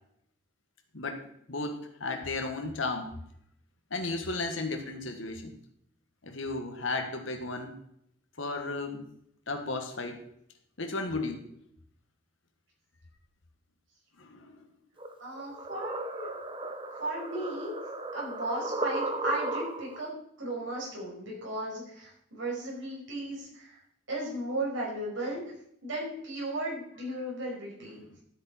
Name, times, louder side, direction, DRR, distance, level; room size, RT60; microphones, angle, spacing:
voice 1, 0.9-3.1 3.9-5.5 6.2-7.8 8.4-9.0 9.5-10.2 10.8-11.4 14.2-14.6, left 3 dB, 70° left, 6 dB, 1.6 m, -34 dB
sound 1, 15.0-20.1, right 2 dB, 25° right, 0.8 m, -35 dB
voice 2, 15.2-16.3 17.0-17.7 18.1-20.1 20.4-23.8 24.1-25.4 25.8-28.0, right 1 dB, 70° right, -4 dB, 5.6 m, -35 dB
13.0 x 8.4 x 4.3 m, 0.72 s
head